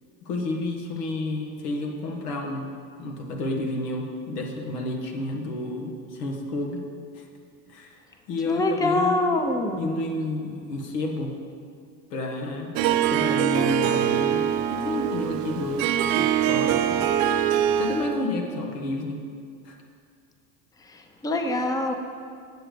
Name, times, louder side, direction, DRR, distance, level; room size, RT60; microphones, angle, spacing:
voice 1, 0.2-2.7 3.0-6.8 7.1-7.2 7.7-8.0 8.3-9.2 9.8-11.3 12.1-12.8 13.1-17.1 17.8-19.2 19.6-19.7, left 2 dB, 85° left, 2 dB, 1.4 m, -30 dB
voice 2, 8.5-10.0 21.2-21.9, left 2 dB, 10° left, 4 dB, 0.6 m, -24 dB
Harp, 12.8-18.2, right 10 dB, 60° right, 0.6 m, -23 dB
8.7 x 6.6 x 5.0 m, 2.2 s
supercardioid pair, 95°, 45 cm